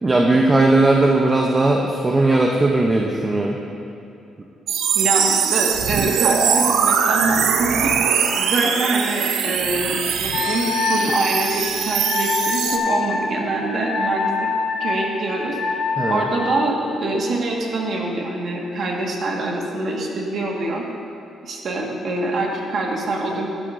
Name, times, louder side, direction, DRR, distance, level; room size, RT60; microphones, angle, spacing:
voice 1, 0.0-3.6 16.0-16.3, right 2 dB, 25° right, 1 dB, 0.7 m, -17 dB
sound 1, 4.7-12.8, right 7 dB, 85° right, 0.6 m, -21 dB
voice 2, 4.9-14.5 14.8-15.8 16.1-20.8 21.4-23.5, right 2 dB, 55° right, -1 dB, 1.6 m, -24 dB
Wind instrument woodwind instrument, 10.3-16.7, left 4 dB, 85° left, 0.9 m, -25 dB
12.0 x 11.0 x 2.6 m, 2.7 s
cardioid pair, 90°, 0 cm